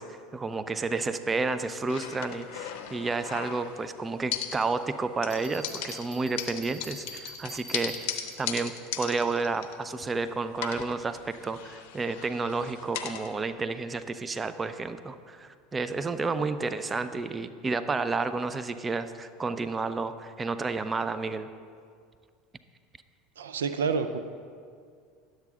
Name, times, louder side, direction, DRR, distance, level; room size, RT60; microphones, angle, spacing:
voice 1, 0.0-8.1 8.4-21.5, right 3 dB, 20° right, 12 dB, 0.4 m, -31 dB
sound 1, 1.9-3.9 4.3-5.0 5.2-10.2 10.5-13.3, left 9 dB, 70° left, 0.6 m, -38 dB
Bell, 5.3-8.6, right 2 dB, 50° right, 1.6 m, -45 dB
voice 2, 23.4-24.2, right 5 dB, 85° right, 10 dB, 0.4 m, -28 dB
10.5 x 7.6 x 3.6 m, 2.1 s
hypercardioid pair, 85°, 0 cm